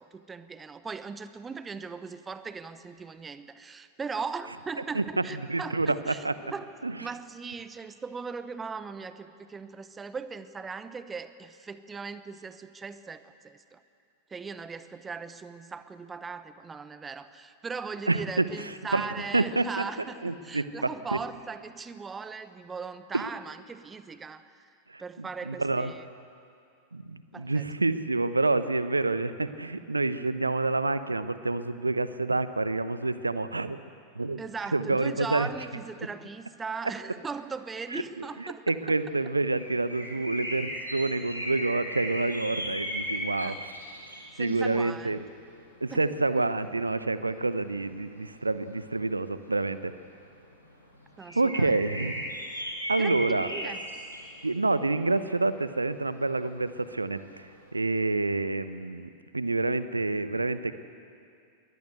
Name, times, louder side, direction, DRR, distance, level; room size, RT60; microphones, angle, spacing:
voice 1, 0.0-6.2 6.5-6.7 7.0-13.8 14.3-24.7 25.0-26.0 27.3-27.7 34.4-39.0 43.4-43.6 44.3-45.2 45.9-46.1 51.2-51.8 52.9-53.8, right 5 dB, 15° right, 13 dB, 0.9 m, -39 dB
voice 2, 4.9-6.3 6.8-6.9 18.1-18.4 18.9-19.1 19.3-19.6 20.2-20.9 23.1-23.2 24.9-25.9 26.9-33.8 34.1-34.4 34.7-35.5 37.9-43.7 44.4-45.2 45.8-49.9 51.3-52.3 52.9-53.5 54.4-57.2 57.7-60.7, right 3 dB, 80° right, 13 dB, 0.9 m, -28 dB
sound 1, 38.8-57.9, equal, 90° left, 4.3 m, -38 dB
22.5 x 19.0 x 8.0 m, 2.4 s
figure-of-eight pair, 90°, 0 cm